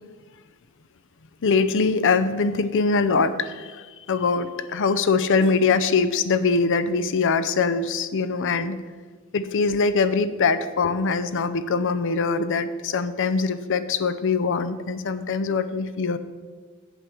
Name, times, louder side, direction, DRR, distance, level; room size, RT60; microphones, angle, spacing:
voice 1, 1.4-8.8 9.3-16.2, left 4 dB, 60° left, 13 dB, 0.6 m, -23 dB
8.3 x 7.8 x 6.2 m, 1.5 s
head